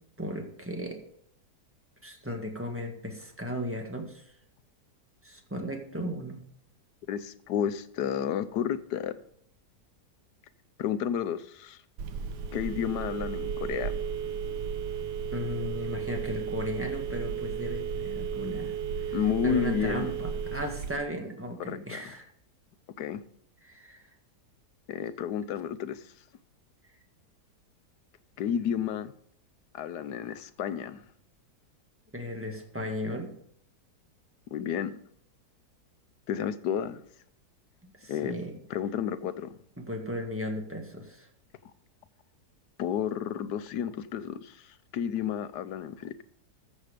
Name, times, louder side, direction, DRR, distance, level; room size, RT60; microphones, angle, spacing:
voice 1, 0.2-1.0 2.0-4.2 5.2-6.4 15.3-19.1 19.4-22.3 23.6-24.0 32.1-33.3 37.8-38.5 39.8-41.3, equal, 10° right, 1.7 m, -36 dB
voice 2, 7.1-9.2 10.8-11.8 12.5-13.9 19.1-20.1 21.6-22.1 23.0-23.2 24.9-26.1 28.4-29.1 29.7-31.0 34.5-35.0 36.3-37.0 38.1-38.3 38.7-39.6 42.8-46.2, left 9 dB, 85° left, 1.3 m, -31 dB
Telephone, 12.0-21.0, right 7 dB, 85° right, 1.5 m, -34 dB
13.5 x 7.4 x 5.1 m
omnidirectional pair, 1.7 m